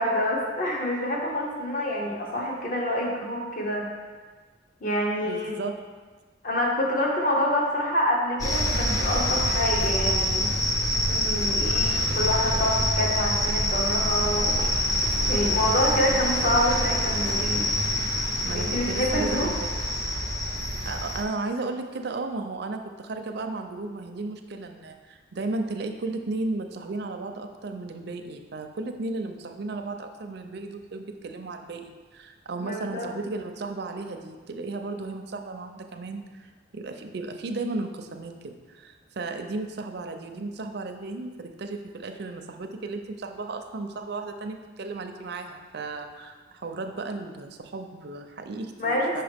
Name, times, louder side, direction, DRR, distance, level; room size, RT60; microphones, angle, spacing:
voice 1, 0.0-3.9 4.8-5.6 6.4-10.5 10.9-14.6 15.3-17.7 18.5-19.5 32.6-33.1 48.8-49.2, left 1 dB, 45° left, -1 dB, 1.0 m, -27 dB
voice 2, 5.2-5.7 18.4-19.7 20.8-49.2, right 3 dB, 60° right, 5 dB, 0.5 m, -34 dB
sound 1, 8.4-21.2, left 1 dB, 20° left, 0.6 m, -26 dB
5.8 x 4.8 x 3.5 m, 1.4 s
head